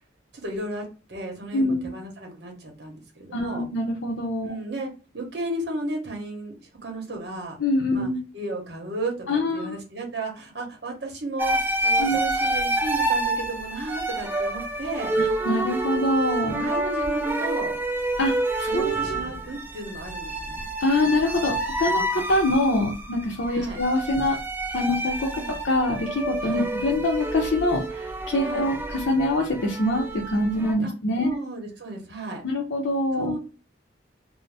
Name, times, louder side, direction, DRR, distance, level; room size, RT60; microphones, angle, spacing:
voice 1, 0.3-3.6 4.4-7.6 7.9-8.1 8.3-15.1 16.4-17.8 18.7-20.7 23.5-23.8 25.3-25.6 26.4-26.7 28.4-28.6 30.8-32.4 33.2-33.4, right 2 dB, 60° right, 1 dB, 0.9 m, -34 dB
voice 2, 1.5-1.9 3.3-4.6 7.6-8.2 9.3-9.8 12.0-12.2 15.2-16.6 18.2-19.2 20.8-24.4 24.7-25.3 25.6-31.4 32.4-33.3, left 1 dB, 85° left, -2 dB, 0.6 m, -25 dB
sound 1, 11.4-30.7, right 2 dB, 10° right, 0.4 m, -28 dB
2.6 x 2.1 x 3.2 m, 0.33 s
head